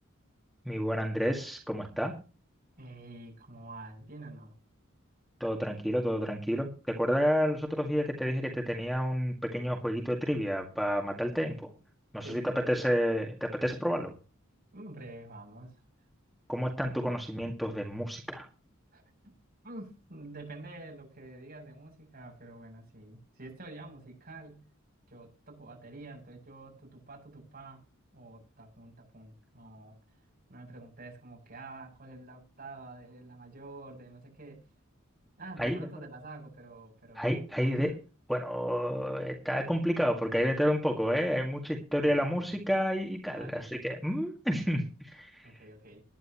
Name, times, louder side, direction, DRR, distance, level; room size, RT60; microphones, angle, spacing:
voice 1, 0.7-2.1 5.4-11.7 12.1-12.4 12.7-14.1 16.5-18.5 35.6-35.8 37.2-38.0 38.3-45.5, equal, ahead, 2 dB, 2.0 m, -30 dB
voice 2, 2.8-4.5 12.2-12.9 14.7-15.8 18.9-19.3 19.6-24.7 25.1-27.8 28.1-30.0 30.5-34.6 35.4-37.9 42.0-42.5 43.3-43.7 45.4-46.0, right 2 dB, 45° right, 1 dB, 7.5 m, -48 dB
19.5 x 11.0 x 3.0 m, 0.34 s
head